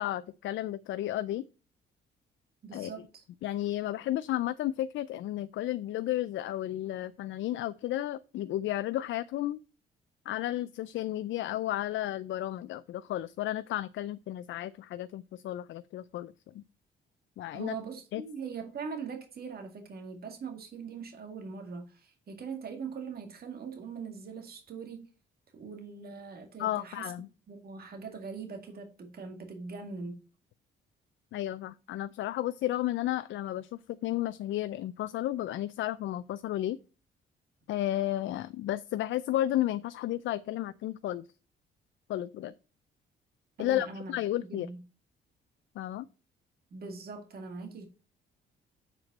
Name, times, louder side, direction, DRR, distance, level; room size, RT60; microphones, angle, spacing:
voice 1, 0.0-1.5 2.7-2.9 3.4-9.6 10.3-16.6 17.4-17.8 18.1-18.2 26.6-27.3 31.3-36.8 37.7-41.3 42.1-42.5 43.6-44.7 45.8-46.1, left 13 dB, 70° left, 0.5 m, -33 dB
voice 2, 2.6-3.2 17.5-25.1 25.5-27.1 27.5-30.2 43.6-44.8 46.7-47.9, right 5 dB, 50° right, 2.1 m, -41 dB
7.6 x 5.0 x 4.2 m
cardioid pair, 90°, 20 cm